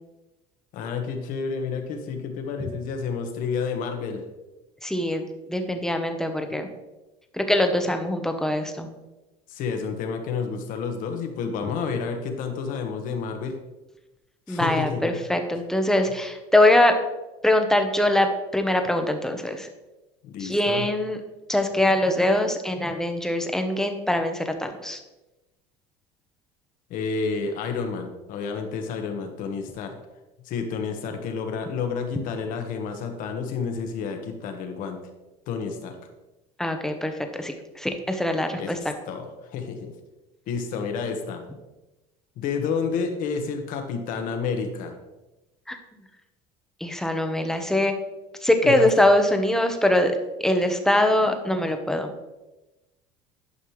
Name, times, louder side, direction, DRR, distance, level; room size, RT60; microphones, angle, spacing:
voice 1, 0.7-4.3 9.5-13.6 14.5-15.2 15.5-15.6 20.2-20.9 26.9-30.0 30.4-35.0 35.5-35.9 38.6-39.9 40.5-41.4 42.4-44.9 48.6-48.9, left 5 dB, 60° left, 5 dB, 1.4 m, -30 dB
voice 2, 4.8-5.2 5.5-6.7 7.3-8.9 14.5-17.0 17.4-19.7 20.4-21.2 21.5-25.0 36.6-38.9 45.7-45.8 46.8-47.9 48.4-52.1, left 1 dB, 5° left, 5 dB, 0.9 m, -23 dB
11.0 x 5.5 x 3.2 m, 1.0 s
supercardioid pair, 115°, 15 cm